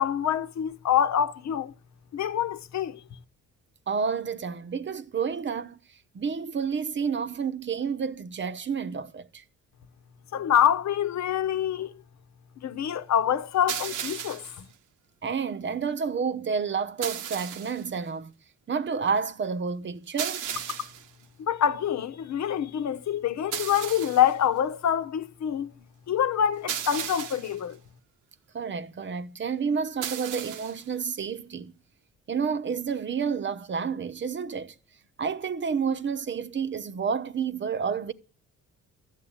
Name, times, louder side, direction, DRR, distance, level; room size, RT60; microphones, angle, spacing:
voice 1, 0.0-1.7 2.1-3.0 10.3-11.9 12.6-14.7 21.4-25.7 26.1-27.8, left 9 dB, 65° left, 1.1 m, -26 dB
voice 2, 3.9-5.8 6.1-9.4 15.2-18.3 18.7-20.4 28.5-31.7 32.3-34.8 35.2-38.1, right 6 dB, 40° right, 0.9 m, -30 dB
sound 1, 13.7-14.6 17.0-17.8 20.2-21.1 23.5-24.3 26.7-27.6 30.0-30.8, right 9 dB, 85° right, 1.2 m, -35 dB
13.0 x 8.2 x 8.7 m
cardioid pair, 90°, 30 cm